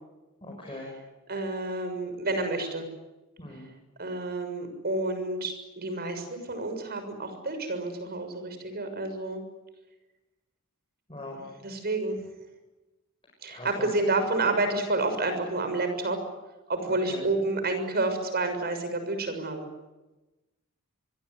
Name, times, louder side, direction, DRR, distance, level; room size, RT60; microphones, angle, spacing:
voice 1, 0.4-0.9 3.4-3.7 11.1-11.5 13.5-13.9 17.0-17.2, left 1 dB, 25° left, 0 dB, 5.8 m, -41 dB
voice 2, 1.3-2.9 4.0-9.4 11.6-12.2 13.4-16.2 16.7-19.7, right 2 dB, 45° right, 8 dB, 6.6 m, -29 dB
26.5 x 21.5 x 9.6 m, 1.1 s
head